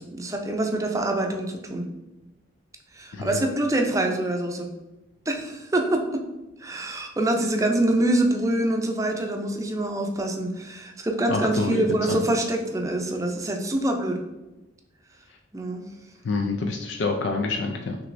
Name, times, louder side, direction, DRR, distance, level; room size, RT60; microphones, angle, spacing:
voice 1, 0.0-1.8 2.9-4.7 5.3-6.2 6.6-14.2 15.5-15.8, right 1 dB, 15° right, 3 dB, 0.5 m, -25 dB
voice 2, 3.1-3.5 11.3-12.2 16.2-18.0, left 3 dB, 80° left, 3 dB, 0.4 m, -27 dB
6.1 x 3.0 x 2.6 m, 1.0 s
head